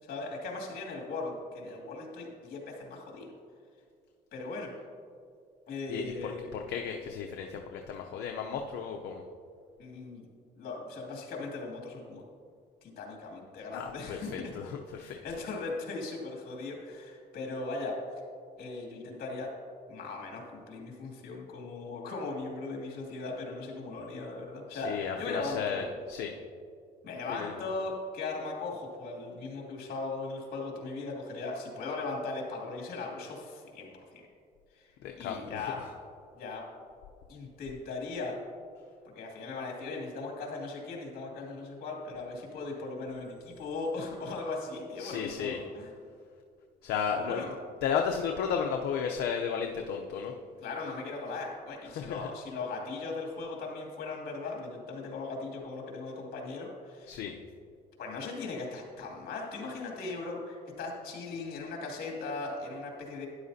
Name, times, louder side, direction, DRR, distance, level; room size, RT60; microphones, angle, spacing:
voice 1, 0.0-3.3 4.3-4.7 5.7-6.5 9.8-10.3 10.6-12.2 12.8-14.5 15.0-18.0 18.6-19.5 19.9-25.9 27.0-34.2 34.8-34.9 35.2-35.9 36.4-36.7 37.3-38.4 39.1-45.9 47.3-47.5 50.6-57.2 58.0-63.3, left 3 dB, 60° left, 0 dB, 2.4 m, -38 dB
voice 2, 5.9-9.2 13.7-15.2 24.7-26.4 27.3-27.5 35.0-35.7 45.0-45.6 46.8-47.5 47.8-50.3 52.0-52.3 57.1-57.4, left 7 dB, 80° left, 3 dB, 0.7 m, -34 dB
13.0 x 10.5 x 2.7 m, 2.3 s
cardioid pair, 110°, 17 cm